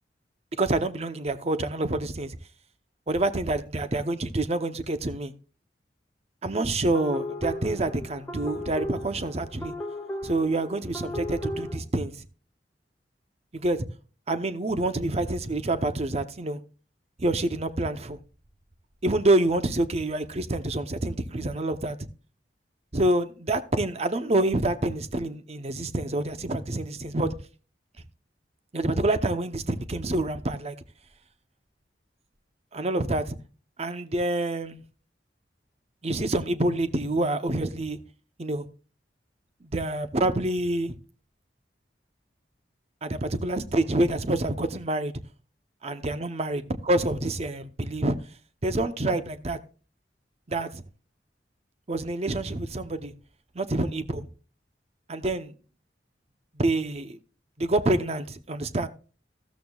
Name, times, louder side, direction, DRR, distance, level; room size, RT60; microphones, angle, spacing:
voice 1, 0.6-2.4 3.1-5.3 6.4-9.7 10.2-12.1 13.5-13.8 14.3-16.6 17.2-18.2 19.0-22.0 22.9-27.3 28.7-30.8 32.7-33.4 33.8-34.8 36.0-38.0 38.4-38.7 39.6-40.9 43.0-45.1 45.8-48.2 48.6-49.6 50.5-50.8 51.9-53.1 53.5-54.3 55.1-55.5 56.6-57.2 57.6-58.9, right 2 dB, 35° right, 0.8 m, -27 dB
sound 1, 6.9-11.8, left 1 dB, 15° left, 1.5 m, -36 dB
13.5 x 13.0 x 2.4 m
head